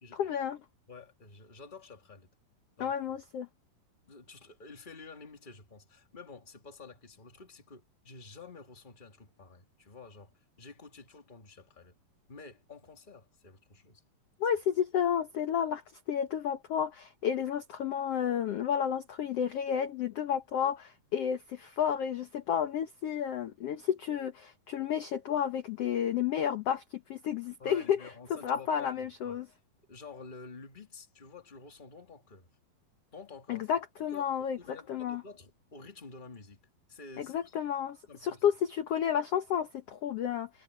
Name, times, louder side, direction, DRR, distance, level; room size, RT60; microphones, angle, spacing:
voice 1, 0.1-0.6 2.8-3.5 14.4-15.8 16.1-26.8 27.1-29.5 33.5-35.2 37.2-40.5, left 8 dB, 65° left, 1.6 m, -31 dB
voice 2, 0.9-2.3 2.8-3.0 4.1-10.3 10.6-12.0 12.3-14.0 27.6-29.4 29.9-32.5 33.1-33.7 34.1-34.3 34.6-36.6 36.9-37.6 38.1-38.4, left 4 dB, 15° left, 1.9 m, -50 dB
omnidirectional pair, 4.1 m